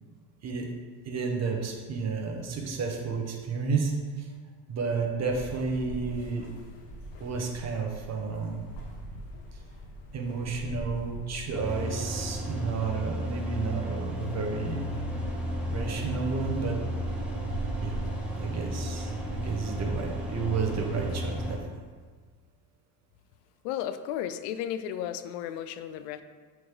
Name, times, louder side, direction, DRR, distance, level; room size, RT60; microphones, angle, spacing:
voice 1, 1.0-4.3 4.7-6.5 7.2-8.6 10.1-14.9 15.7-16.8 17.8-17.9 18.4-21.6, right 4 dB, 35° right, 2 dB, 1.1 m, -31 dB
sound 1, 5.2-21.5, right 1 dB, 60° left, 1.5 m, -42 dB
sound 2, 11.5-21.6, equal, 5° right, 1.1 m, -34 dB
voice 2, 23.6-26.2, left 10 dB, 85° left, 11 dB, 0.6 m, -34 dB
6.1 x 4.8 x 3.8 m, 1.5 s
supercardioid pair, 110°, 47 cm